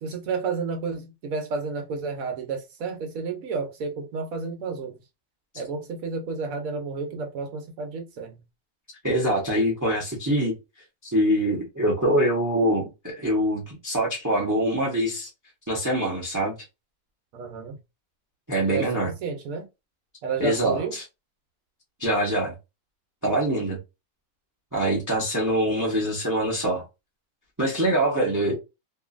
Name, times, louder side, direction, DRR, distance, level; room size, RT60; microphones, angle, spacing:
voice 1, 0.0-5.0 5.5-8.4 17.3-17.8 18.6-19.7 20.2-21.0 28.1-28.6, right 5 dB, 70° right, 1.1 m, -31 dB
voice 2, 9.0-10.5 11.0-15.3 15.7-16.5 18.5-19.1 20.4-21.0 22.0-22.5 23.2-23.8 24.7-26.8 27.6-28.6, right 1 dB, 15° right, 0.6 m, -24 dB
2.7 x 2.5 x 2.4 m
omnidirectional pair, 1.6 m